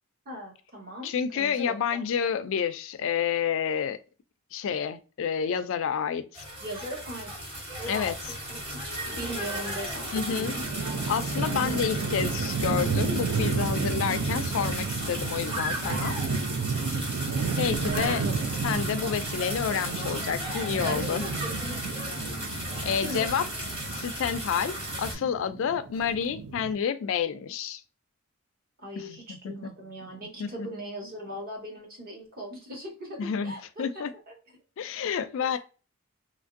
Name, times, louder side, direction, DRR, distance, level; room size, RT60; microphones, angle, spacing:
voice 1, 0.2-2.0 6.6-7.3 7.8-10.6 11.4-11.8 17.9-18.4 20.8-21.8 23.0-23.4 28.8-34.3 35.5-35.6, equal, 40° right, 1.2 m, -39 dB
voice 2, 1.0-4.0 4.5-6.4 7.9-8.1 10.1-10.5 11.1-16.2 17.6-18.2 18.6-21.3 22.8-23.4 23.9-27.8 29.0-29.7 30.4-30.7 33.2-34.1 34.8-35.6, left 7 dB, 60° left, 0.3 m, -29 dB
sound 1, 6.3-25.2, equal, 25° right, 1.2 m, -35 dB
sound 2, 10.2-26.8, right 5 dB, 75° right, 0.4 m, -32 dB
3.0 x 2.5 x 2.5 m
head